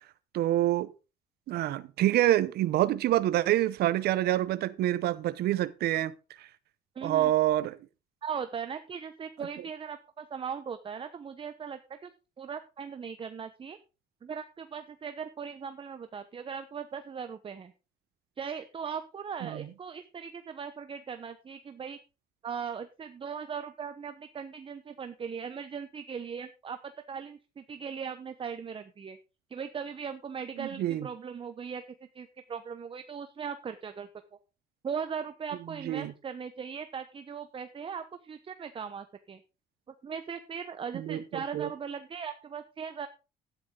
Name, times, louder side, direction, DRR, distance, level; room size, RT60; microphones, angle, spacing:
voice 1, 0.3-0.9 1.5-6.1 6.4-6.5 7.0-7.7 19.4-19.6 30.6-31.1 35.8-36.1 40.9-41.2 41.5-41.7, right 14 dB, 70° right, 0.8 m, -26 dB
voice 2, 6.9-7.3 8.2-12.1 12.4-13.8 14.2-17.7 18.4-22.0 22.4-29.2 29.5-31.8 32.1-34.1 34.8-39.4 40.0-43.1, right 6 dB, 30° right, 1.0 m, -39 dB
12.5 x 10.0 x 3.8 m
cardioid pair, 110°, 17 cm